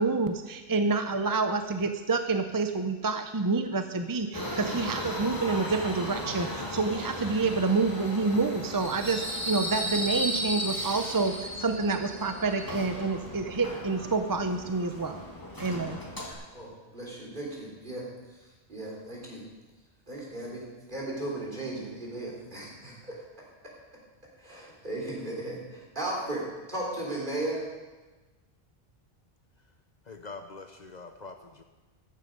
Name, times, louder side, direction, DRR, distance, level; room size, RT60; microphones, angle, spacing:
voice 1, 0.0-15.2 15.6-16.0, right 3 dB, 30° right, 7 dB, 0.4 m, -28 dB
Subway metro underground, 4.3-16.3, equal, 20° left, 2.1 m, -35 dB
voice 2, 16.5-18.1 18.7-19.4 20.1-23.2 23.6-23.8 24.4-27.7, right 1 dB, 50° right, -4 dB, 3.8 m, -36 dB
voice 3, 30.1-31.6, left 3 dB, 45° left, 6 dB, 0.8 m, -44 dB
14.0 x 9.4 x 5.3 m, 1.2 s
omnidirectional pair, 1.0 m